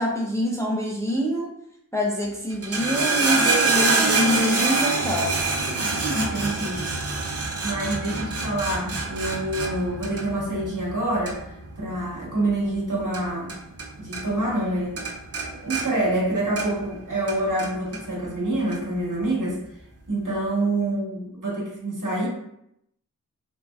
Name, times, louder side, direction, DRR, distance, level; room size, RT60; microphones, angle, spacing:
voice 1, 0.0-1.5 1.9-5.3, equal, 10° left, -3 dB, 0.5 m, -25 dB
sound 1, 2.5-13.9 14.1-14.7 15.0-16.9 17.3-18.0 18.7-18.8, right 3 dB, 45° right, 0.5 m, -26 dB
voice 2, 5.7-6.9 7.6-11.4 11.8-13.6 14.0-15.0 15.5-19.6 20.1-22.3, right 1 dB, 65° right, -5 dB, 1.1 m, -27 dB
2.9 x 2.7 x 2.3 m, 0.77 s
wide cardioid pair, 60°, 34 cm